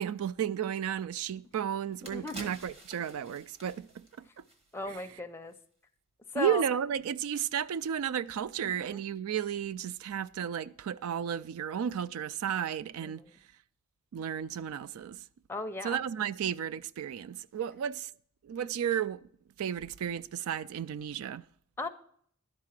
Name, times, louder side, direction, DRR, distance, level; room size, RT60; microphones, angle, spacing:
voice 1, 0.0-4.3 4.9-5.2 6.4-13.2 14.1-15.2 15.8-18.1 18.4-19.3 19.6-21.5, right 9 dB, 75° right, 0.3 m, -33 dB
sound 1, 1.3-1.4 1.8-5.1 5.4-5.6, right 1 dB, 30° right, 1.3 m, -49 dB
voice 2, 2.1-2.5 4.7-5.5 6.3-6.6 8.8-8.9 13.0-13.1 15.5-16.0 21.8-21.9, left 2 dB, 10° left, 0.5 m, -36 dB
11.5 x 4.7 x 7.4 m
head